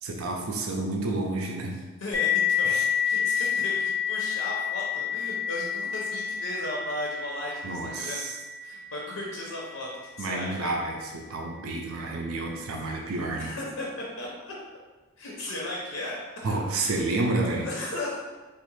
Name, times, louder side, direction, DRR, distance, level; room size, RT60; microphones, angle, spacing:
voice 1, 0.0-1.7 2.6-2.9 3.3-3.5 7.6-8.4 10.2-13.6 16.4-17.7, right 2 dB, 90° right, 1 dB, 0.4 m, -30 dB
voice 2, 2.0-2.8 3.0-8.2 8.6-9.9 10.2-10.7 13.4-14.5 15.2-16.2 17.6-18.2, left 1 dB, 85° left, -3 dB, 0.6 m, -36 dB
sound 1, 2.1-11.4, left 8 dB, 20° left, 0.5 m, -30 dB
3.1 x 2.4 x 3.1 m, 1.2 s
head